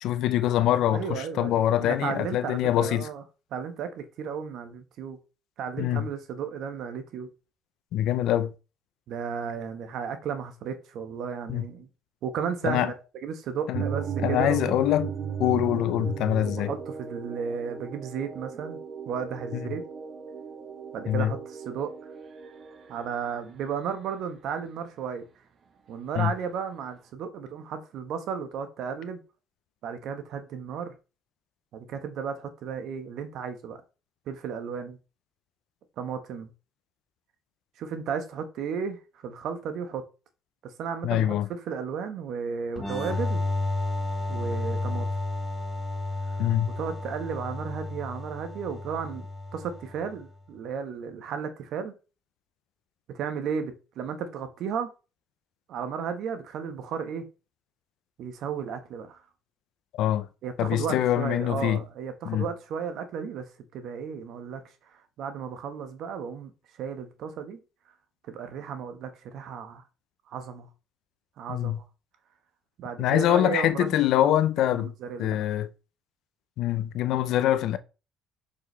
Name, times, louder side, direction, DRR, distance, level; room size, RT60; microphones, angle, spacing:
voice 1, 0.0-3.1 5.8-6.1 7.9-8.5 11.5-11.6 12.6-12.9 13.7-13.8 14.2-15.1 15.4-16.7 19.5-19.6 21.1-21.3 26.1-26.3 41.0-41.5 46.4-46.7 59.9-60.3 60.6-61.8 62.2-62.5 71.5-71.8 73.0-74.9 75.2-75.7 76.6-77.8, left 12 dB, 70° left, 0.6 m, -24 dB
voice 2, 0.9-3.2 3.5-5.2 5.6-7.3 9.1-11.9 12.2-14.8 16.4-18.8 19.1-19.8 20.9-21.9 22.9-25.2 25.9-29.2 29.8-30.9 31.7-33.8 34.3-35.0 36.0-36.5 37.8-40.0 40.6-43.4 44.3-45.1 46.3-46.4 46.8-49.3 49.5-51.9 53.1-54.9 55.7-57.3 58.2-59.2 60.4-63.4 63.7-64.6 65.2-66.5 66.8-67.6 68.3-69.8 70.3-70.7 71.4-71.8 72.8-73.9 74.7-75.5, right 6 dB, 65° right, 1.3 m, -34 dB
sound 1, 13.7-23.1, right 7 dB, 50° right, 1.0 m, -36 dB
sound 2, 42.8-50.2, left 2 dB, 20° left, 3.7 m, -32 dB
6.4 x 5.5 x 3.3 m
supercardioid pair, 65°, 0 cm